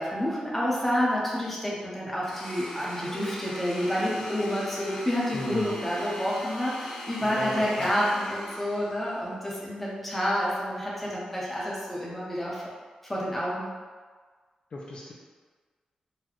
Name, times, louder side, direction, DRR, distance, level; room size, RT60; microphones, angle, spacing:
voice 1, 0.0-12.6 13.0-13.7, equal, 5° left, -6 dB, 0.7 m, -29 dB
Domestic sounds home sounds, 2.2-9.3, left 1 dB, 65° left, 0.9 m, -40 dB
voice 2, 5.3-5.7 7.2-7.9 14.7-15.1, left 1 dB, 45° left, -4 dB, 0.4 m, -35 dB
3.9 x 2.2 x 3.0 m, 1.5 s
wide cardioid pair, 165°, 2 cm